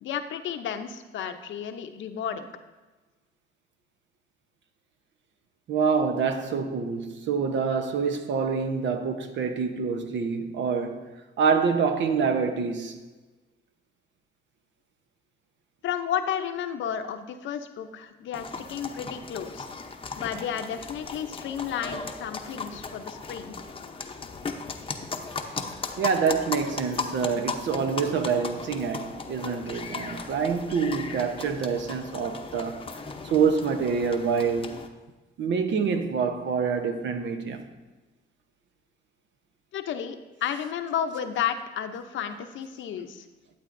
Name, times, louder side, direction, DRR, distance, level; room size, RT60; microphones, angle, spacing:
voice 1, 0.0-2.5 15.8-19.7 20.2-23.6 39.7-43.3, left 8 dB, 70° left, 0.7 m, -32 dB
voice 2, 5.7-11.1 11.4-13.0 26.0-32.8 33.2-34.8 35.4-37.6, right 5 dB, 70° right, 0.9 m, -26 dB
sound 1, 18.3-34.9, left 4 dB, 25° left, 0.7 m, -37 dB
12.0 x 7.9 x 2.6 m
cardioid pair, 90°, 20 cm